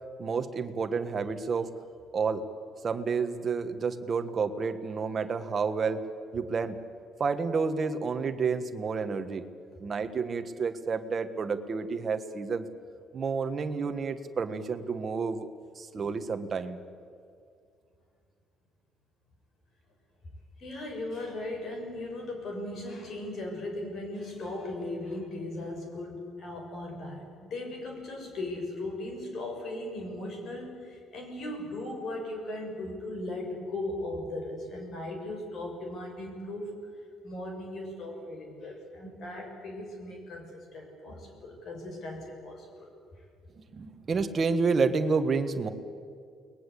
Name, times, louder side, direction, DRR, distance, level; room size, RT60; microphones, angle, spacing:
voice 1, 0.2-1.7 2.1-2.4 2.8-6.0 6.3-6.8 7.2-9.4 9.8-12.7 13.1-15.5 15.8-16.8 43.7-45.7, right 5 dB, 30° right, 8 dB, 1.5 m, -30 dB
voice 2, 20.6-36.7 37.2-42.9, left 1 dB, 45° left, 2 dB, 6.6 m, -38 dB
29.5 x 21.0 x 8.4 m, 2.3 s
cardioid pair, 170°, 0 cm